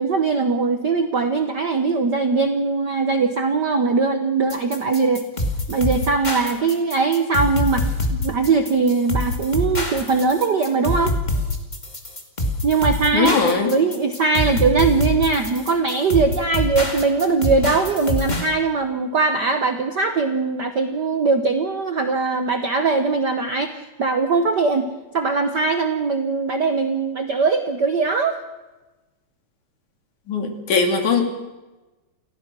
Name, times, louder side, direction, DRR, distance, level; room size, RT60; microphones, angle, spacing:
voice 1, 0.0-5.2 5.7-11.1 12.6-24.9 25.1-28.4, right 4 dB, 65° right, 7 dB, 1.0 m, -21 dB
sound 1, 4.5-18.5, left 1 dB, 15° left, 2.1 m, -25 dB
voice 2, 13.1-13.7 30.3-31.2, left 5 dB, 85° left, 4 dB, 3.9 m, -20 dB
29.0 x 14.5 x 6.1 m, 1.1 s
omnidirectional pair, 3.4 m